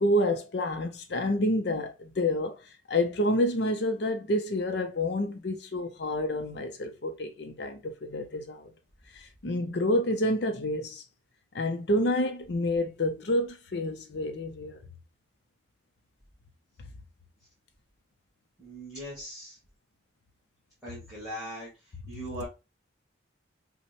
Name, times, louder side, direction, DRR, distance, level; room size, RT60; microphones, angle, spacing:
voice 1, 0.0-8.7 9.1-11.0 11.5-14.8, left 1 dB, 60° left, 0.6 m, -28 dB
voice 2, 18.6-19.6 20.8-21.7 22.1-22.4, equal, 5° right, 1.8 m, -39 dB
5.9 x 2.1 x 2.9 m
head